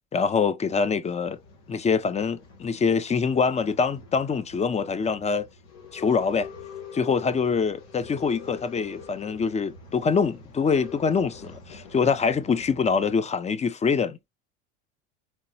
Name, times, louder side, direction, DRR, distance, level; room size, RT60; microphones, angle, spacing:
voice 1, 0.1-1.4 1.7-5.5 5.9-6.5 6.9-14.2, left 5 dB, 20° left, 0.6 m, -24 dB
Male speech man speaking / Chatter / Rattle, 1.3-13.2, left 6 dB, 75° left, 2.0 m, -44 dB
4.5 x 3.7 x 2.8 m
hypercardioid pair, 95°, 36 cm